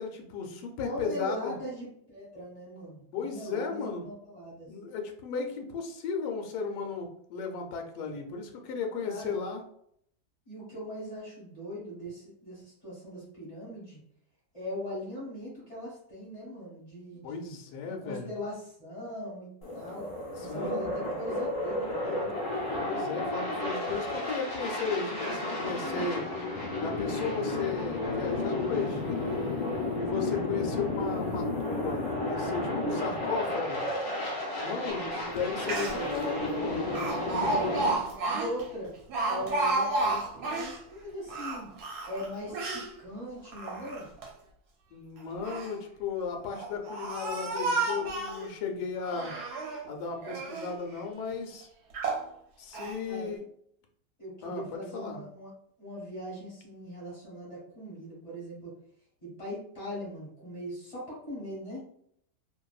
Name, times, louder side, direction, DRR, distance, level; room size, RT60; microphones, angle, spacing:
voice 1, 0.0-1.5 3.1-4.0 4.7-9.6 17.2-18.3 20.4-20.8 22.7-26.3 26.8-29.4 30.0-33.8 34.6-35.1 35.3-36.9 44.9-49.3 49.8-51.7 52.6-53.4 54.4-55.2, left 5 dB, 75° left, 3 dB, 1.1 m, -35 dB
voice 2, 0.8-4.7 9.0-9.4 10.4-14.0 14.5-17.6 17.8-20.1 20.4-22.4 34.7-35.1 35.7-36.1 38.3-38.9 39.3-41.7 42.1-44.1 53.0-53.3 54.2-55.5 55.8-58.7 59.2-61.8, equal, 25° left, -8 dB, 0.8 m, -40 dB
sound 1, 19.6-38.0, left 2 dB, 45° left, 0.4 m, -32 dB
Speech, 35.4-35.5 35.6-36.2 37.0-40.8 41.3-42.9 43.5-44.3 45.2-45.8 46.5-48.5 49.0-49.8 50.2-50.7 51.3-51.4 51.9-52.3 52.7-53.0, right 2 dB, 75° right, 1.1 m, -32 dB
2.6 x 2.4 x 2.3 m, 0.68 s
omnidirectional pair, 1.8 m